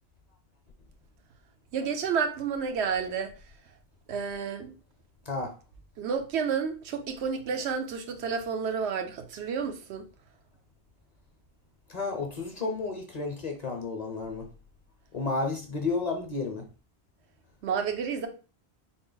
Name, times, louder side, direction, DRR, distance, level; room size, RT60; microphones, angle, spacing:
voice 1, 1.7-3.3 4.1-4.7 6.0-10.0 17.6-18.3, right 6 dB, 90° right, 0.9 m, -30 dB
voice 2, 11.9-14.5 15.1-16.6, left 3 dB, 45° left, 0.6 m, -32 dB
3.9 x 2.0 x 3.8 m
omnidirectional pair, 1.1 m